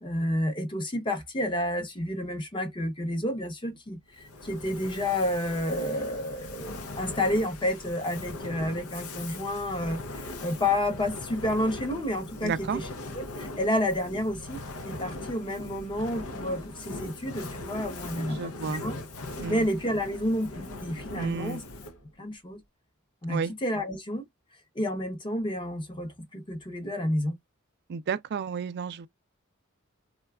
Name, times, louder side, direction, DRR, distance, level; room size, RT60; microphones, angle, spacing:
voice 1, 0.0-12.9 13.1-14.6 14.8-18.5 18.8-19.0 19.5-21.6 22.2-22.6 23.2-24.2 24.8-27.3, left 1 dB, 20° left, 0.7 m, -30 dB
Fire, 4.1-22.1, left 2 dB, 75° left, 0.6 m, -40 dB
voice 2, 12.4-12.8 18.3-18.8 19.4-19.7 21.1-21.6 23.3-23.5 27.9-29.1, right 6 dB, 50° right, 0.4 m, -32 dB
3.8 x 2.3 x 2.2 m
head